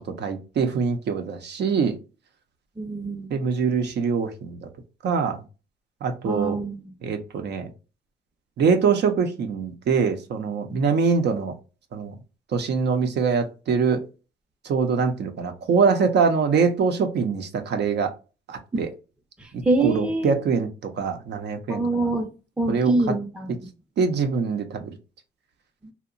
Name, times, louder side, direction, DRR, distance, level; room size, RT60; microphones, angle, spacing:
voice 1, 0.2-2.0 3.3-4.6 5.0-5.4 6.0-6.6 7.0-7.7 8.6-11.5 11.9-12.1 12.5-14.0 14.6-18.1 18.5-18.9 19.5-22.1 22.7-22.9 24.0-25.0, right 5 dB, 60° right, 5 dB, 0.6 m, -23 dB
voice 2, 2.8-3.3 6.2-6.9 18.7-18.8 19.4-20.4 21.7-22.3 22.6-23.6, right 2 dB, 5° right, 4 dB, 0.5 m, -25 dB
2.8 x 2.1 x 2.4 m, 0.32 s
cardioid pair, 90°, 20 cm